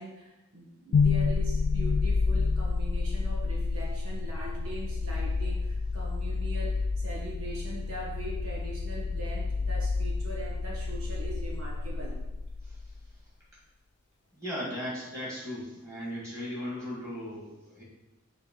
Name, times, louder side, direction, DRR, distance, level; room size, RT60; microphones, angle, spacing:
voice 1, 0.0-12.2, right 1 dB, 75° right, -2 dB, 1.2 m, -41 dB
sound 1, 0.9-13.0, left 4 dB, 85° left, 0.4 m, -29 dB
voice 2, 14.3-17.8, equal, 15° right, -6 dB, 2.1 m, -37 dB
6.4 x 3.3 x 5.4 m, 1.0 s
head